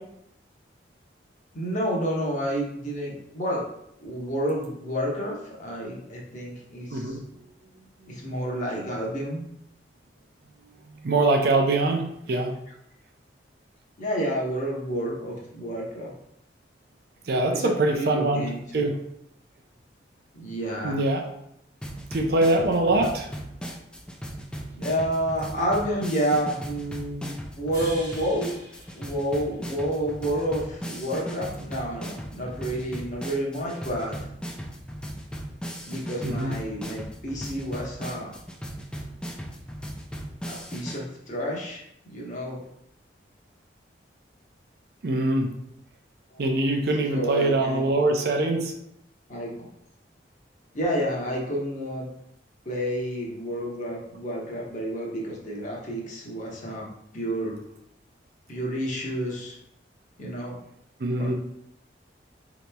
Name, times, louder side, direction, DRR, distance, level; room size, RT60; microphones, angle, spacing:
voice 1, 1.5-3.6 4.0-7.2 8.1-9.4 14.0-16.1 17.5-18.9 20.3-21.0 24.7-28.5 28.9-34.2 35.8-38.3 40.4-41.8 42.1-42.6 46.3-46.4 47.1-47.9 49.3-49.5 50.7-52.1 52.6-56.9 57.1-57.6 58.5-59.6 60.2-60.6 61.2-61.3, equal, 45° left, -3 dB, 0.9 m, -30 dB
voice 2, 6.9-7.4 8.0-8.1 10.9-12.5 17.3-19.0 20.8-21.2 22.1-23.3 36.2-36.6 45.0-45.5 46.4-48.7 61.0-61.3, right 2 dB, 60° right, 3 dB, 0.5 m, -24 dB
sound 1, 21.8-41.0, equal, 5° left, 0.3 m, -37 dB
sound 2, 27.7-30.1, right 1 dB, 20° right, 0.9 m, -45 dB
4.0 x 2.9 x 2.2 m, 0.76 s
head